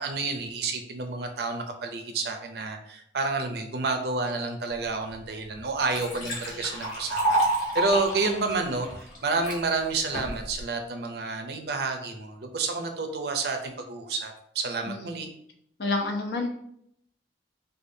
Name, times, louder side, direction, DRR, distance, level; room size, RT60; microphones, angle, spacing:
voice 1, 0.0-15.3, right 3 dB, 65° right, 5 dB, 0.5 m, -30 dB
Liquid, 5.1-5.2 5.6-9.6 10.1-10.6, right 2 dB, 45° left, 1.3 m, -29 dB
voice 2, 15.8-16.5, left 3 dB, 65° left, 2 dB, 0.7 m, -28 dB
4.9 x 2.3 x 2.7 m, 0.70 s
head